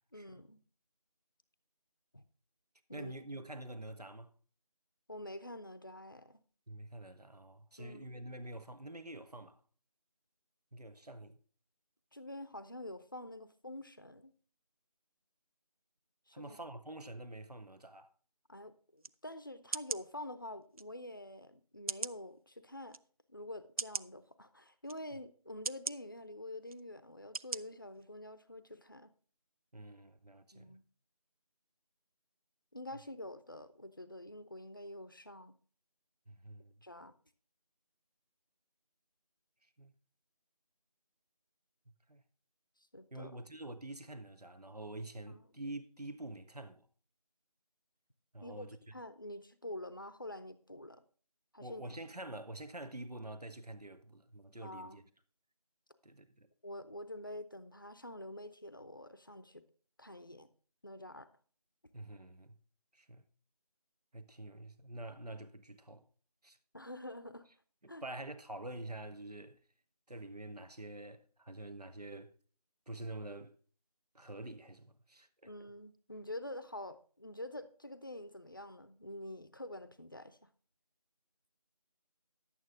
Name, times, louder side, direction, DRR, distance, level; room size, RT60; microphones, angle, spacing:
voice 1, 0.1-0.6 2.1-2.2 2.9-3.2 5.1-6.4 7.8-8.1 12.1-14.3 16.3-16.6 18.5-23.0 23.3-29.1 30.5-30.8 32.7-35.5 36.8-37.1 42.9-43.4 45.3-45.4 48.4-51.0 51.5-51.9 54.6-55.0 56.6-59.6 60.0-60.5 60.8-61.3 66.7-67.5 67.9-68.0 75.4-80.4, left 1 dB, 35° left, 0.6 m, -47 dB
voice 2, 2.9-4.3 6.7-9.6 10.7-11.4 16.3-18.1 29.7-30.8 36.3-36.8 39.8-39.9 42.1-42.2 43.1-46.9 48.3-48.9 51.6-55.0 56.0-56.5 61.9-62.6 62.9-63.2 64.1-66.1 66.4-66.6 67.8-69.6 70.1-72.3 72.9-73.5 74.1-75.5, right 1 dB, 85° right, 1.4 m, -47 dB
sound 1, 19.0-19.1 19.7-20.0 20.8-20.9 21.9-22.2 22.9-23.0 23.8-24.1 24.9-25.0 25.6-26.0 26.7-26.8 27.3-27.6 28.0-28.1, right 4 dB, 65° right, 0.4 m, -38 dB
11.5 x 8.9 x 3.8 m
figure-of-eight pair, 175°, 20 cm